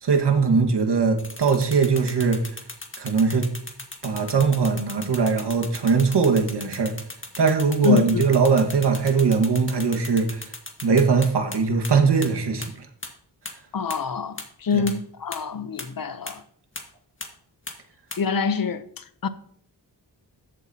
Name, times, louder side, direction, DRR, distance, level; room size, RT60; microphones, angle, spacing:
voice 1, 0.0-2.4 3.0-3.5 4.0-6.9 7.4-10.4 10.8-12.7 14.7-14.8, right 5 dB, 70° right, 1.7 m, -21 dB
sound 1, 1.2-11.6 11.8-11.9 12.2-12.3 12.6-12.7 13.0-13.1 13.5-13.6 13.9-14.0 14.4-14.5 14.9-15.0 15.3-15.4 15.8-15.9 16.3-16.4 16.8-16.9 17.2-17.3 17.7-17.8 18.1-18.2, left 2 dB, 30° left, 1.8 m, -36 dB
voice 2, 7.8-8.3 13.7-16.4 18.2-19.3, left 6 dB, 55° left, 0.8 m, -26 dB
14.0 x 8.2 x 2.8 m
wide cardioid pair, 85°, 42 cm